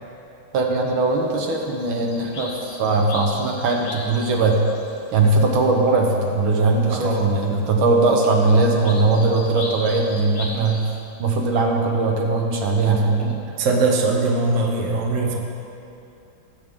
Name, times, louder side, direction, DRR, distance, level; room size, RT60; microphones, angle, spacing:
voice 1, 0.5-4.6 5.1-10.9 11.2-13.4, right 3 dB, 70° right, 0 dB, 1.9 m, -20 dB
sound 1, 1.1-6.8 7.1-11.0, left 2 dB, 50° left, 1.6 m, -39 dB
voice 2, 6.9-7.2 13.6-15.4, right 3 dB, 45° right, -1 dB, 1.3 m, -21 dB
18.5 x 8.1 x 3.7 m, 2.7 s
omnidirectional pair, 2.3 m